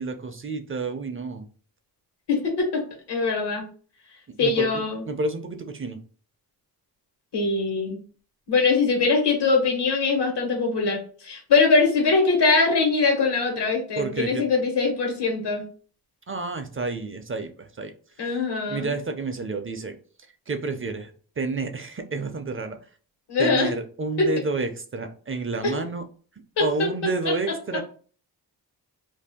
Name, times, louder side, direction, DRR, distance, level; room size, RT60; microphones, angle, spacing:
voice 1, 0.0-1.5 4.3-4.7 5.1-6.0 14.0-14.4 16.3-18.4 18.7-20.0 20.5-22.8 23.4-26.0 26.6-27.8, right 3 dB, 30° right, 6 dB, 0.4 m, -30 dB
voice 2, 2.3-2.8 3.1-3.6 4.4-5.0 7.3-8.0 8.5-15.6 18.2-18.9 23.3-23.7 25.6-25.7 26.6-26.7, left 4 dB, 80° left, 1 dB, 1.3 m, -22 dB
2.6 x 2.2 x 3.5 m, 0.42 s
cardioid pair, 75°, 40 cm